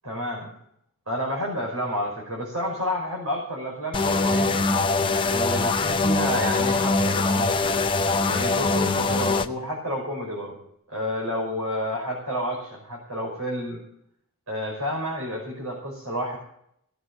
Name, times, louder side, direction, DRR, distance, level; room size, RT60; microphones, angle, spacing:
voice 1, 0.0-0.5 1.1-4.5 5.3-7.8 8.3-10.6 10.9-13.8 14.5-16.4, equal, 85° right, -4 dB, 5.5 m, -30 dB
sound 1, 3.9-9.5, left 3 dB, 20° left, 0.6 m, -23 dB
18.5 x 8.0 x 7.8 m, 0.72 s
head